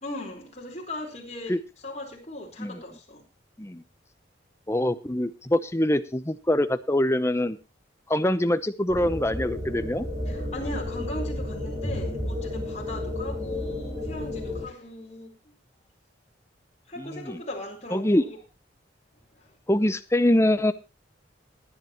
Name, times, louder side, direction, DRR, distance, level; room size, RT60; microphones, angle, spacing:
voice 1, 0.0-1.6 1.8-3.2 10.3-15.5 16.9-18.4 19.3-19.6, left 1 dB, 35° left, 4.4 m, -38 dB
voice 2, 4.7-7.6 8.1-10.1 17.0-17.4 17.9-18.2 19.7-20.7, left 1 dB, 15° left, 0.8 m, -24 dB
sound 1, 8.9-14.7, left 1 dB, 15° right, 4.4 m, -32 dB
19.5 x 10.5 x 3.0 m
head